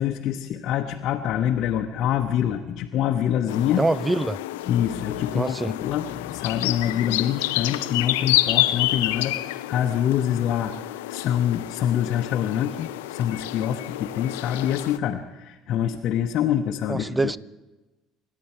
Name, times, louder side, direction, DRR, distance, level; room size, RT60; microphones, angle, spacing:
voice 1, 0.0-3.8 4.6-17.3, left 10 dB, 60° left, 1.0 m, -25 dB
sound 1, 3.5-15.0, left 16 dB, 80° left, 0.5 m, -29 dB
voice 2, 3.8-4.4 5.3-5.7 16.9-17.4, right 2 dB, 15° right, 0.5 m, -24 dB
26.5 x 12.0 x 4.6 m
hypercardioid pair, 65°, 0 cm